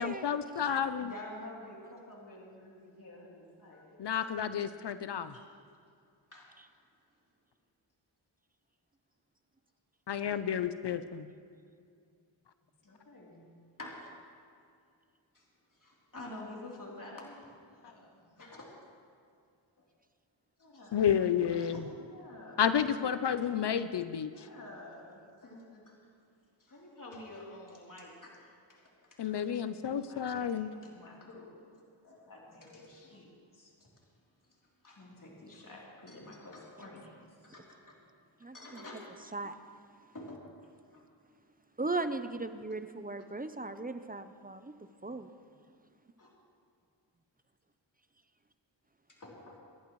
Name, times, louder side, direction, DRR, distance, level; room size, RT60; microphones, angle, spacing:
voice 1, 0.0-1.1 4.0-5.3 10.1-11.3 20.9-21.8 22.6-24.3 29.2-30.7, left 8 dB, 60° left, 12 dB, 0.6 m, -31 dB
voice 2, 0.6-4.0 5.3-5.5 6.3-6.5 12.8-13.4 13.8-14.2 15.3-15.4 15.7-17.4 17.6-18.8 20.6-21.1 21.5-22.7 23.4-23.5 24.3-26.0 26.6-28.8 29.9-31.5 32.0-33.7 34.8-38.0 38.5-39.0 40.1-40.5 40.9-41.0 45.0-45.1 46.2-46.3 49.1-49.6, left 1 dB, 40° left, -4 dB, 3.3 m, -49 dB
voice 3, 38.4-38.9 39.3-39.5 41.8-44.7 45.0-45.3, right 2 dB, 20° right, 10 dB, 0.7 m, -37 dB
26.0 x 11.0 x 3.1 m, 2.3 s
cardioid pair, 60°, 47 cm